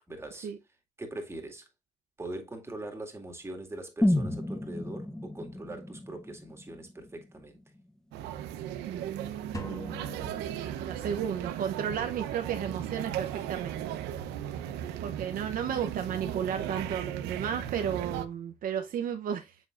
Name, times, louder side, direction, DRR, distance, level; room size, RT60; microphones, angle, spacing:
voice 1, 0.1-0.5 1.0-1.7 2.2-7.6, right 2 dB, 15° right, 2.1 m, -42 dB
sound 1, 4.0-8.0 8.3-8.4, left 1 dB, 5° left, 0.6 m, -32 dB
sound 2, 8.1-18.3, right 10 dB, 90° right, 0.9 m, -37 dB
voice 2, 8.9-10.0 10.6-13.9 15.0-19.7, right 8 dB, 55° right, 0.8 m, -34 dB
sound 3, 9.5-11.3, left 1 dB, 20° left, 1.3 m, -43 dB
7.1 x 6.3 x 2.5 m
cardioid pair, 110°, 17 cm